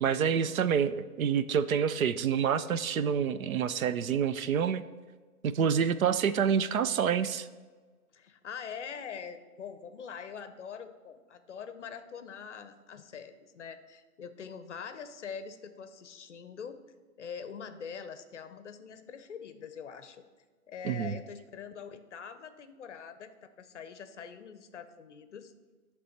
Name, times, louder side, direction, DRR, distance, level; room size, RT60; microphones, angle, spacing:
voice 1, 0.0-4.8 5.4-7.5 20.8-21.1, right 7 dB, 65° right, 13 dB, 0.5 m, -27 dB
voice 2, 8.1-16.8 17.2-20.2 20.7-25.5, left 6 dB, 50° left, 11 dB, 0.6 m, -44 dB
9.9 x 3.4 x 6.5 m, 1.4 s
hypercardioid pair, 170°, 45 cm